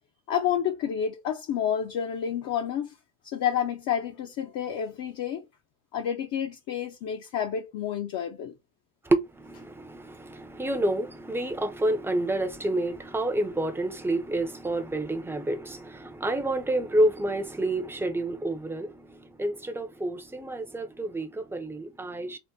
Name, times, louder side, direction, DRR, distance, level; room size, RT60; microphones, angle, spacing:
voice 1, 0.3-2.9 3.2-5.4 5.9-8.5, left 9 dB, 45° left, 0.7 m, -29 dB
voice 2, 9.1-22.4, right 1 dB, 5° right, 0.5 m, -29 dB
3.7 x 2.1 x 4.0 m
supercardioid pair, 110°, 46 cm